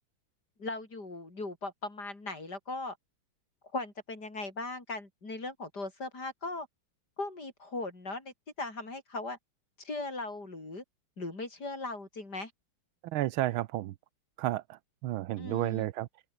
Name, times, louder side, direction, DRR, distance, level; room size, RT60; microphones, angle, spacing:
voice 1, 0.6-3.0 3.7-6.7 7.2-9.4 9.8-10.8 11.2-12.5 15.4-15.9, left 2 dB, 50° left, 6.2 m, -38 dB
voice 2, 13.0-13.9 14.4-16.1, right 15 dB, 85° right, 1.6 m, -32 dB
omnidirectional pair, 2.2 m